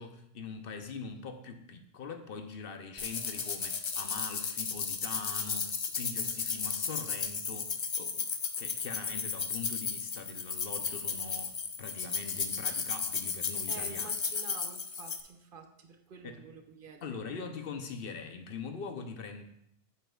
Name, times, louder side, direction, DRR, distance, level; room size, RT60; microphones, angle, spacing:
voice 1, 0.0-8.3 8.6-14.1 16.2-16.4 17.0-19.4, left 5 dB, 65° left, 7 dB, 0.9 m, -42 dB
sound 1, 3.0-15.2, left 5 dB, 45° left, 0.4 m, -34 dB
voice 2, 13.7-17.2, right 5 dB, 60° right, 6 dB, 0.8 m, -49 dB
8.1 x 7.9 x 2.3 m, 0.73 s
omnidirectional pair, 1.1 m